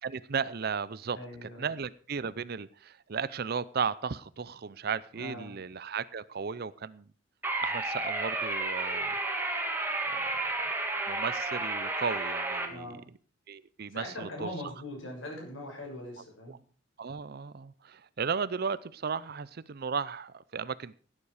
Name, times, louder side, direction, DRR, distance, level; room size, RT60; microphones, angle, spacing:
voice 1, 0.0-7.1 7.6-9.1 10.1-10.4 11.1-13.0 13.5-14.7 16.5-16.6 17.0-21.0, right 6 dB, 50° right, 17 dB, 0.5 m, -35 dB
voice 2, 1.1-1.7 5.1-5.6 12.7-13.0 13.9-16.6, left 1 dB, 80° left, 1 dB, 6.5 m, -41 dB
sound 1, 7.4-12.7, right 2 dB, 10° right, 2.0 m, -32 dB
16.5 x 9.8 x 4.9 m, 0.42 s
head